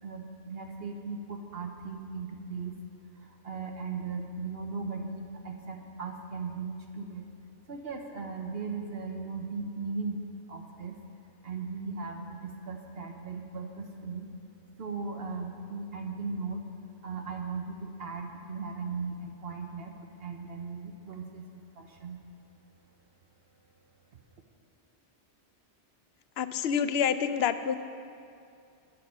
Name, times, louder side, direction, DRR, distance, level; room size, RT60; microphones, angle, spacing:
voice 1, 0.0-2.8 3.1-7.3 7.7-10.2 10.5-11.0 11.4-14.3 14.8-16.6 17.0-22.2, right 4 dB, 60° right, 3 dB, 1.1 m, -38 dB
voice 2, 26.4-27.7, left 7 dB, 65° left, 11 dB, 0.8 m, -27 dB
20.0 x 6.8 x 5.5 m, 2.4 s
omnidirectional pair, 1.2 m